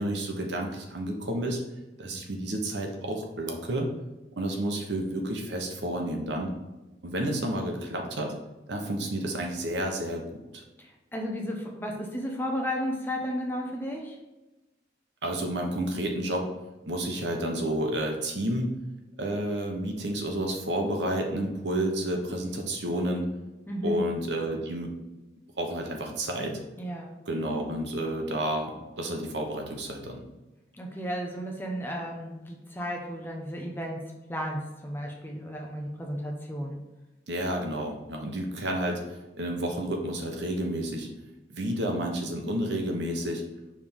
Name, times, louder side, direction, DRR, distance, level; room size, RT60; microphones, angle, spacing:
voice 1, 0.0-1.6 2.0-3.9 4.4-6.5 7.0-8.3 8.7-10.6 15.2-16.5 16.9-18.7 19.2-23.3 23.8-24.9 25.6-26.6 27.3-30.2 37.3-41.1 41.5-43.4, right 1 dB, 75° right, 2 dB, 1.0 m, -30 dB
voice 2, 10.8-14.2 23.7-24.0 26.8-27.1 30.8-36.8, equal, 10° left, 0 dB, 0.8 m, -33 dB
5.1 x 3.4 x 5.5 m, 1.1 s
head